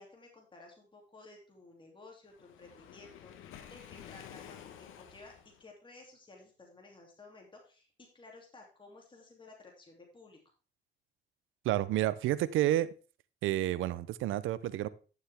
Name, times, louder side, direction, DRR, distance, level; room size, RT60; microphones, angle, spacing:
voice 1, 0.0-5.3 5.6-10.4, left 3 dB, 25° left, 0 dB, 2.8 m, -55 dB
Waves surf, 2.3-5.6, left 9 dB, 85° left, 1.2 m, -51 dB
voice 2, 11.6-12.9 13.4-14.9, right 14 dB, 90° right, 18 dB, 0.6 m, -30 dB
11.0 x 7.3 x 3.5 m, 0.36 s
cardioid pair, 90°, 20 cm